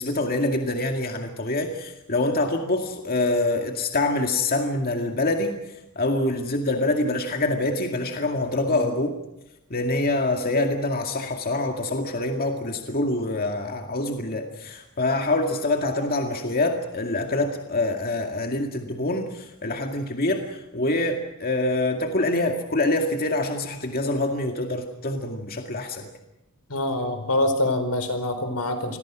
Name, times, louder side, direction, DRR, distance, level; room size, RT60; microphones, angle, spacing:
voice 1, 0.0-5.6 6.0-9.2 9.7-26.1, left 2 dB, 45° left, 3 dB, 2.2 m, -25 dB
voice 2, 26.7-29.0, left 1 dB, 90° left, 9 dB, 4.5 m, -25 dB
28.0 x 22.0 x 6.3 m, 0.91 s
head